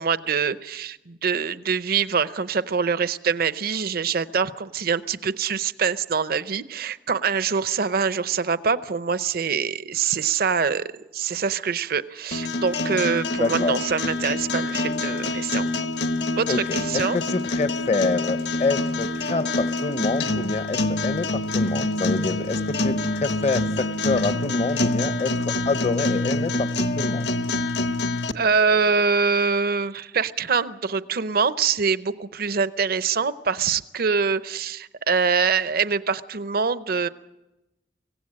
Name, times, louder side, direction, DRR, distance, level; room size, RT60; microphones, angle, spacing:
voice 1, 0.0-15.7 16.4-17.2 28.3-37.1, right 5 dB, 60° right, 14 dB, 0.7 m, -24 dB
sound 1, 12.3-28.3, left 2 dB, 70° left, 1.1 m, -26 dB
voice 2, 13.4-13.8 16.5-16.6 16.9-26.7 27.0-27.3, left 3 dB, 40° left, 11 dB, 0.7 m, -26 dB
24.5 x 17.0 x 8.7 m, 1.0 s
head